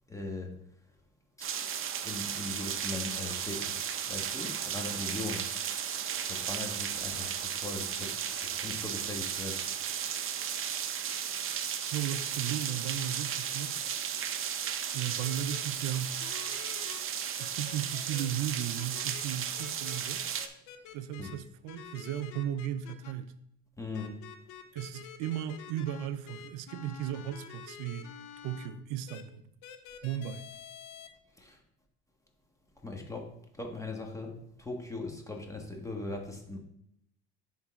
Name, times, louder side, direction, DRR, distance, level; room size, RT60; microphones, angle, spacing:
voice 1, 0.1-0.6 1.4-1.5 2.0-3.8 4.1-5.5 6.2-9.6 21.2-21.4 23.8-24.2 31.4-31.6 32.8-36.6, left 2 dB, 10° left, 1.5 m, -40 dB
sound 1, 1.4-20.5, right 8 dB, 40° right, 0.7 m, -35 dB
voice 2, 11.9-13.8 14.9-16.2 17.4-20.3 20.9-23.3 24.7-28.1 28.4-29.4 30.0-30.4, right 11 dB, 75° right, 0.5 m, -36 dB
sound 2, 15.2-15.6 16.2-17.0 17.4-18.2 18.7-19.2 19.6-20.0 20.4-21.4 21.7-23.1 23.9-28.7 29.1-29.2 29.6-31.1, left 9 dB, 70° left, 0.8 m, -48 dB
10.5 x 3.9 x 3.7 m
supercardioid pair, 90°, 31 cm